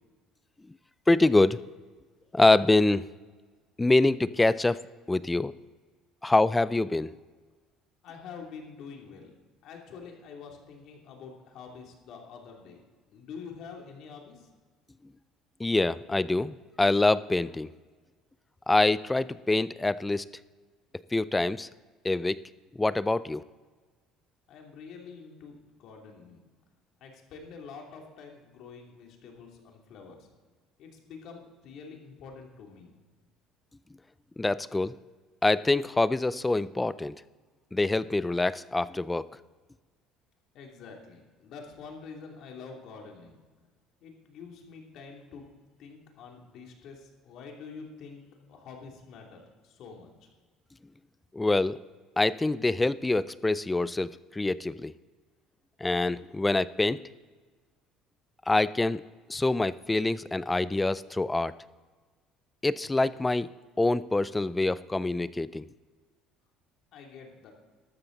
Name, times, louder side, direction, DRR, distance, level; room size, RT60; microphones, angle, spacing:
voice 1, 1.1-1.6 2.3-3.1 3.8-4.8 5.1-5.5 6.2-7.1 15.6-17.7 18.7-20.3 21.1-21.7 22.0-22.4 22.7-23.4 34.4-34.9 35.4-37.2 37.7-39.3 51.3-51.8 52.2-54.9 55.8-57.0 58.5-59.0 59.3-61.5 62.6-63.5 63.8-65.6, left 2 dB, 10° left, 17 dB, 0.3 m, -25 dB
voice 2, 8.0-9.3 9.6-12.8 13.1-14.5 24.5-26.4 27.0-30.3 30.8-32.9 40.5-43.4 44.0-45.4 45.8-48.2 48.5-50.3 66.9-67.5, left 5 dB, 60° left, 1 dB, 2.7 m, -46 dB
13.0 x 13.0 x 3.9 m, 1.4 s
cardioid pair, 130°, 0 cm